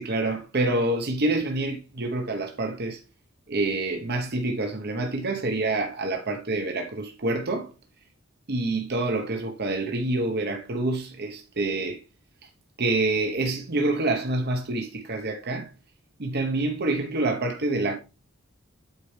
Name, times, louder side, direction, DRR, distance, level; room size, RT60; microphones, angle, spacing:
voice 1, 0.0-3.0 3.5-7.7 8.5-12.0 12.8-15.7 16.2-18.0, right 2 dB, 50° right, 1.0 m, -27 dB
8.4 x 4.6 x 3.3 m
head